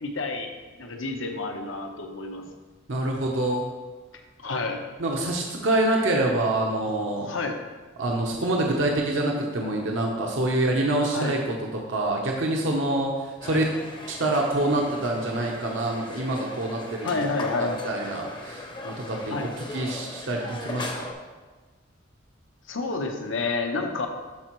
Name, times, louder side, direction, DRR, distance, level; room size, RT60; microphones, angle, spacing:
voice 1, 0.0-2.5 4.4-4.8 6.9-7.6 11.1-11.3 17.0-17.8 19.3-19.5 22.7-24.1, left 3 dB, 75° left, 4 dB, 0.9 m, -29 dB
voice 2, 2.9-3.7 5.0-7.3 8.0-11.4 11.9-13.6 14.1-17.1 17.6-19.3 19.7-21.1, right 1 dB, 70° right, 0 dB, 0.9 m, -26 dB
sound 1, 13.4-21.1, left 2 dB, 25° left, 0.7 m, -38 dB
13.0 x 4.5 x 3.1 m, 1.3 s
head